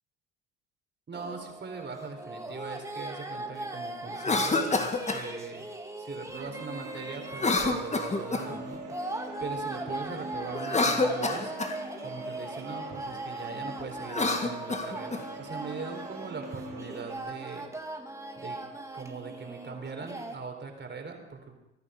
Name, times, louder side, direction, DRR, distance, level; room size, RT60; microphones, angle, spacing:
sound 1, 1.1-20.4, right 2 dB, 10° right, 2.1 m, -39 dB
voice 1, 1.1-5.7 6.0-11.5 12.0-17.7 18.4-18.6 18.9-21.5, right 4 dB, 35° right, 4 dB, 4.0 m, -41 dB
Cough, 4.1-5.3 7.3-8.6 10.5-11.8 14.0-15.2, left 3 dB, 20° left, 1.9 m, -28 dB
sound 2, 6.3-17.2, right 3 dB, 70° right, 5.0 m, -44 dB
24.0 x 11.0 x 5.1 m, 0.92 s
supercardioid pair, 80°, 32 cm